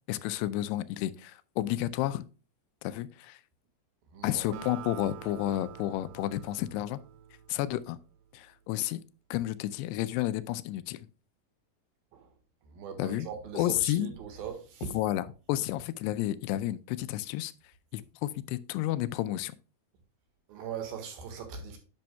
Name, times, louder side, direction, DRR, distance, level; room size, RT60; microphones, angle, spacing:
voice 1, 0.1-2.3 2.8-3.4 4.2-7.0 7.5-8.0 8.3-9.0 9.3-11.0 13.0-13.3 13.5-14.1 14.9-17.5 17.9-19.5, left 14 dB, 85° left, 2.6 m, -31 dB
voice 2, 4.1-4.6 12.1-12.3 12.7-15.0 20.5-21.8, right 7 dB, 65° right, 3.1 m, -40 dB
Acoustic guitar, 4.5-8.1, right 11 dB, 80° right, 2.2 m, -47 dB
10.5 x 6.3 x 2.2 m
omnidirectional pair, 4.8 m